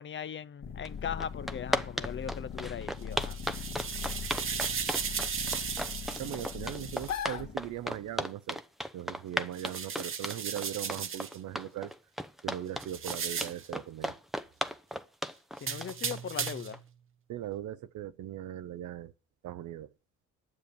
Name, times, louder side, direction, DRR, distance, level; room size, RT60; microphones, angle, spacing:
voice 1, 0.0-3.4 15.6-16.8, left 8 dB, 40° left, 0.6 m, -39 dB
sound 1, 0.6-8.1, left 7 dB, 60° left, 1.9 m, -40 dB
sound 2, 0.8-0.9 1.2-16.8, equal, ahead, 0.7 m, -35 dB
sound 3, 3.0-7.2 9.5-11.4 12.8-13.7 15.6-16.8, right 7 dB, 45° right, 1.0 m, -36 dB
voice 2, 6.2-8.6 8.9-11.9 12.4-14.2 17.3-19.1 19.4-19.9, right 12 dB, 75° right, 0.7 m, -39 dB
9.8 x 7.0 x 6.6 m
cardioid pair, 90°, 30 cm